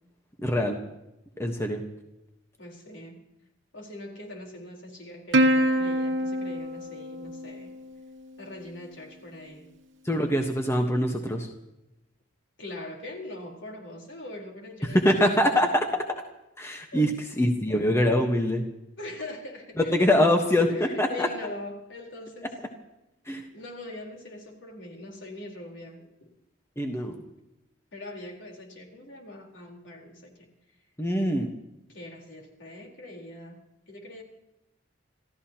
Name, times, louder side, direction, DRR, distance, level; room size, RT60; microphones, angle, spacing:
voice 1, 0.4-0.8 1.4-1.8 10.0-11.5 14.9-15.8 16.6-17.1 17.4-18.6 19.9-20.7 21.0-21.3 23.3-23.4 26.8-27.2 31.0-31.5, left 1 dB, 15° left, 3 dB, 1.3 m, -23 dB
voice 2, 2.6-3.3 3.7-7.8 8.4-9.7 12.6-15.8 16.9-17.8 19.0-20.4 20.7-22.6 23.5-26.3 27.9-30.5 31.9-34.2, left 1 dB, 70° left, 0 dB, 4.3 m, -42 dB
Plucked string instrument, 5.3-8.1, equal, 70° right, 1.1 m, -25 dB
27.5 x 15.0 x 3.0 m, 0.92 s
head